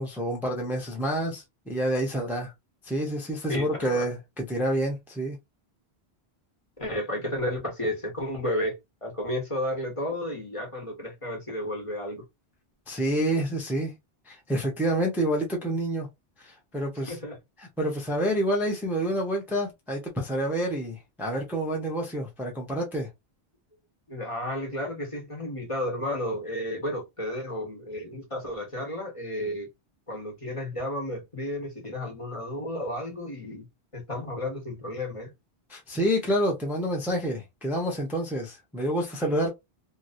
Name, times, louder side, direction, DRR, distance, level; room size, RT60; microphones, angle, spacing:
voice 1, 0.0-2.5 2.8-5.4 12.9-13.9 14.3-16.1 16.4-17.2 17.6-23.1 35.7-39.5, right 1 dB, ahead, 0.7 m, -28 dB
voice 2, 3.5-4.1 6.8-12.2 17.1-17.4 24.1-29.7 30.1-33.6 33.9-35.3, left 1 dB, 30° left, 1.2 m, -32 dB
3.0 x 2.6 x 2.5 m
omnidirectional pair, 1.1 m